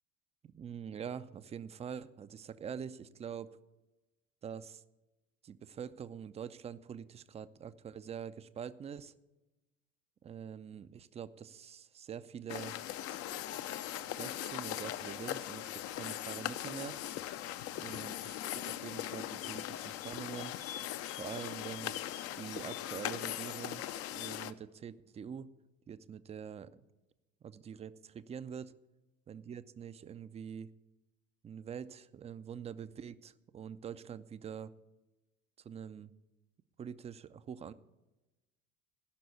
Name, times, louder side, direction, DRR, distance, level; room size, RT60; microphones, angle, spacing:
voice 1, 0.4-3.6 4.4-4.8 5.4-9.1 10.2-12.8 13.3-13.6 14.0-17.0 17.8-20.5 21.1-23.8 24.1-25.5 25.9-26.8 27.4-28.7 29.3-30.7 31.4-34.7 35.6-36.1 36.8-37.7, right 7 dB, 15° right, 14 dB, 0.4 m, -45 dB
sound 1, 12.5-24.5, left 12 dB, 40° left, 0.6 m, -40 dB
16.0 x 6.1 x 8.3 m, 1.0 s
figure-of-eight pair, 65°, 40 cm